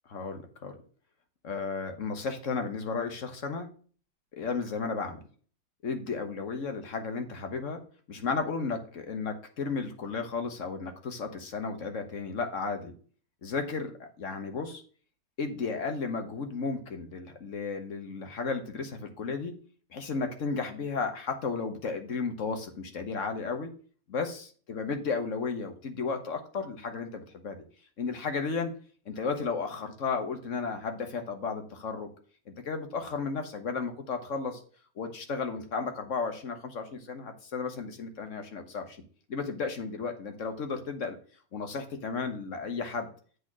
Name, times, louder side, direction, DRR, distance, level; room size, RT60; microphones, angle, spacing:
voice 1, 0.1-0.8 1.4-3.7 4.3-5.2 5.8-7.8 8.1-12.9 13.4-14.8 15.4-19.5 19.9-23.7 24.1-27.6 28.0-28.7 29.0-32.1 32.5-34.6 35.0-39.0 39.3-41.2 41.5-43.1, left 4 dB, 55° left, 6 dB, 1.5 m, -34 dB
8.0 x 4.3 x 6.0 m, 0.43 s
omnidirectional pair, 1.7 m